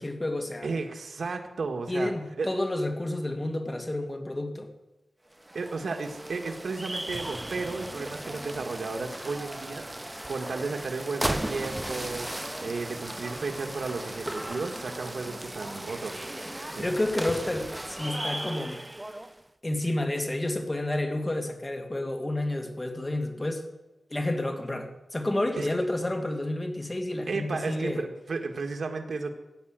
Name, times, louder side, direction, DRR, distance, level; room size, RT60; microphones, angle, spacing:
voice 1, 0.0-0.7 1.9-4.7 16.8-18.8 19.6-23.7 24.1-28.0, left 1 dB, 20° left, 5 dB, 2.4 m, -30 dB
voice 2, 0.6-2.1 2.4-2.5 5.5-12.3 12.6-16.2 16.7-16.9 25.6-25.7 27.3-29.3, right 4 dB, 80° right, 4 dB, 1.7 m, -33 dB
sound 1, 5.3-19.4, right 1 dB, 15° right, 0.8 m, -36 dB
15.0 x 9.0 x 8.9 m, 1.0 s
wide cardioid pair, 75°, 0 cm